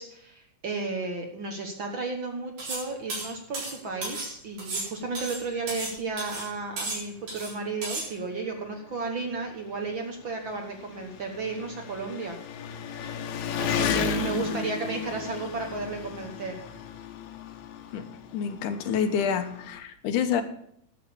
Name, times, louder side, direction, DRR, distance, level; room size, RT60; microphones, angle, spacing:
voice 1, 0.0-12.4 13.6-16.6, right 3 dB, 50° right, 3 dB, 1.6 m, -33 dB
sound 1, 2.6-2.8 3.1-4.3 4.6-5.9 6.2-6.5 6.8-7.5 7.8-8.1, right 2 dB, 80° right, 5.7 m, -34 dB
Engine, 5.2-5.3 5.7-5.8 6.8-6.9 7.1-19.8, left 6 dB, 70° left, 2.1 m, -35 dB
voice 2, 13.8-14.6 17.9-18.1 18.3-20.4, left 7 dB, 85° left, 8 dB, 2.5 m, -29 dB
11.5 x 7.3 x 7.0 m, 0.69 s
omnidirectional pair, 3.5 m